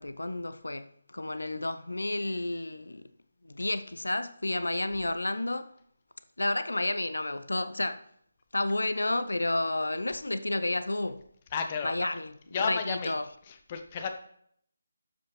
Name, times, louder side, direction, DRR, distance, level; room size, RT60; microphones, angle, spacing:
voice 1, 0.0-3.1 3.4-5.7 6.4-8.0 8.5-11.2 11.8-12.3 12.6-13.2, left 2 dB, 70° left, 0.6 m, -31 dB
voice 2, 11.5-12.1 12.5-13.1 13.4-14.1, left 6 dB, 30° left, 1.0 m, -32 dB
12.0 x 7.4 x 3.2 m
figure-of-eight pair, 150°, 0 cm